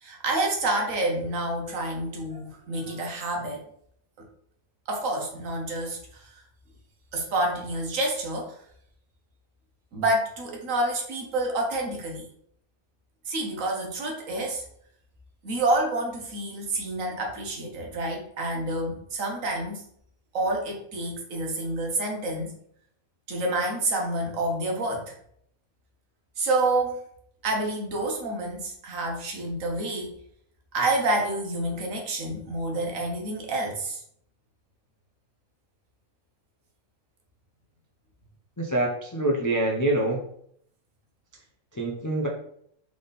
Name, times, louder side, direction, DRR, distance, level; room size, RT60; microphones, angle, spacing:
voice 1, 0.0-3.6 4.9-6.4 7.1-8.5 9.9-12.3 13.3-14.6 15.4-19.8 20.3-22.5 23.3-25.1 26.4-27.0 27.4-30.1 30.7-34.0, right 2 dB, 70° right, 1 dB, 1.4 m, -28 dB
voice 2, 38.6-40.2 41.7-42.3, right 1 dB, 30° left, -2 dB, 0.3 m, -25 dB
3.6 x 3.5 x 4.0 m, 0.68 s
omnidirectional pair, 1.4 m